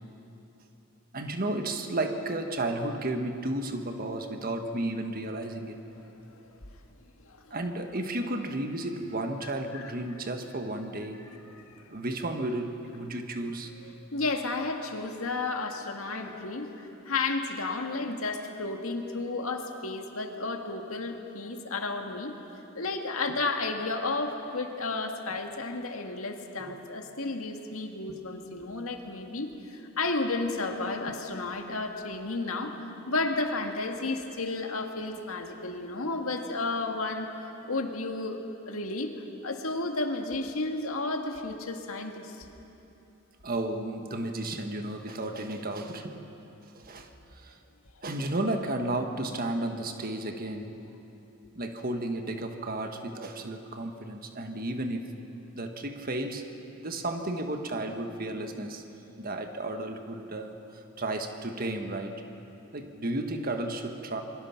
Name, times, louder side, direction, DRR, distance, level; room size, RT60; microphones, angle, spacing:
voice 1, 1.1-5.8 7.5-11.2 11.9-13.7 26.6-26.8 43.4-46.2 46.6-47.6 48.0-50.8 51.5-55.1 55.5-56.5 56.8-58.8 59.2-62.2 62.7-64.2, right 1 dB, 45° right, 5 dB, 1.5 m, -33 dB
voice 2, 7.2-7.6 9.7-9.8 11.2-11.9 14.1-22.3 22.7-32.8 33.1-37.3 37.7-39.1 39.4-42.5, left 3 dB, 85° left, 4 dB, 1.9 m, -32 dB
27.0 x 23.0 x 5.9 m, 3.0 s
head